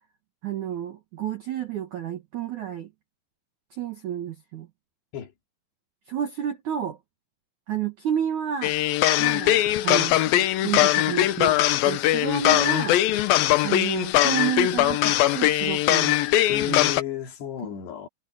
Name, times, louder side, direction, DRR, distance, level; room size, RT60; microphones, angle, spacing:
voice 1, 0.4-2.9 3.7-4.7 6.1-7.0 7.7-8.7 9.2-13.0 13.6-16.2 16.7-16.8, right 10 dB, 65° right, 1.9 m, -30 dB
sound 1, 8.6-17.0, left 14 dB, 90° left, 2.1 m, -21 dB
voice 2, 16.5-18.1, left 10 dB, 65° left, 4.5 m, -33 dB
omnidirectional pair, 5.4 m